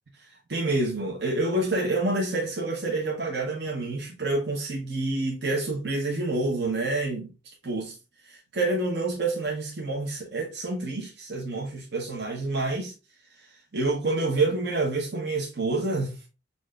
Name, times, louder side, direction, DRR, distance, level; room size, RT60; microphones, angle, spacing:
voice 1, 0.5-7.3 7.6-7.9 8.2-12.9 13.7-16.3, right 2 dB, 65° right, 0.9 m, -28 dB
7.0 x 2.5 x 2.4 m
head